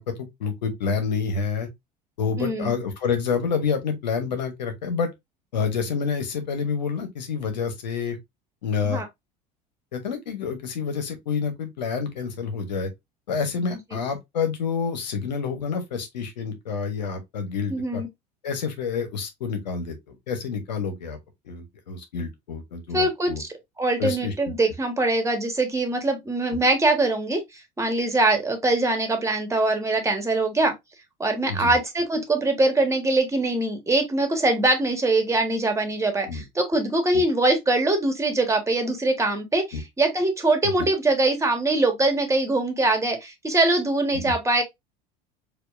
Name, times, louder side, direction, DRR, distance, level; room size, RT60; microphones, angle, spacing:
voice 1, 0.0-1.7 2.2-5.1 5.5-8.2 8.6-9.0 9.9-12.9 13.3-18.0 18.4-21.2 21.4-23.4 24.0-24.7 31.5-31.8 36.3-36.4 37.1-37.2 39.7-39.8 44.2-44.3, left 5 dB, 90° left, 1.0 m, -28 dB
voice 2, 2.4-2.7 8.8-9.1 17.7-18.1 22.9-27.4 27.8-30.7 31.2-44.6, right 2 dB, 15° right, 1.4 m, -23 dB
4.5 x 2.6 x 2.5 m
hypercardioid pair, 75°, 21 cm